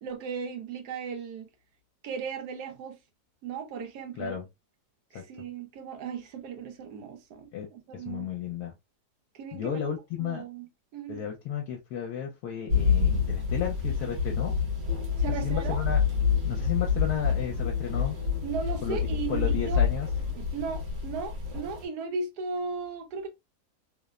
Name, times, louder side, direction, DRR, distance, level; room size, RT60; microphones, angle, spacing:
voice 1, 0.0-1.5 2.0-3.0 3.4-4.4 5.1-8.3 9.3-9.9 10.2-11.3 15.2-15.8 18.4-19.8 20.3-23.3, right 5 dB, 80° right, 1.2 m, -36 dB
voice 2, 7.9-8.7 9.5-10.4 11.1-14.6 15.4-16.0 16.4-18.2 18.8-19.0 19.3-20.1, left 8 dB, 75° left, 1.1 m, -33 dB
sound 1, 12.7-21.9, left 6 dB, 65° right, 1.4 m, -27 dB
sound 2, 14.9-20.3, left 8 dB, 40° left, 0.8 m, -50 dB
3.1 x 2.0 x 2.3 m
omnidirectional pair, 1.7 m